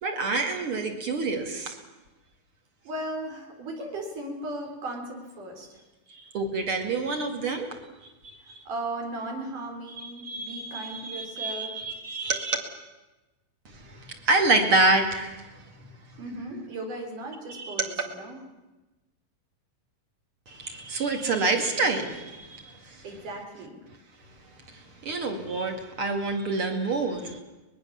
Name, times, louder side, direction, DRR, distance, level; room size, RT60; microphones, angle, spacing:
voice 1, 0.0-1.8 6.1-7.7 8.2-8.5 10.0-12.6 13.7-15.6 17.5-17.9 20.5-23.0 24.7-27.4, right 3 dB, 45° right, 4 dB, 2.8 m, -27 dB
voice 2, 2.8-5.8 8.7-11.8 16.2-18.4 23.0-23.8, right 1 dB, 65° right, 1 dB, 5.1 m, -36 dB
23.5 x 20.5 x 7.2 m, 1.1 s
omnidirectional pair, 3.9 m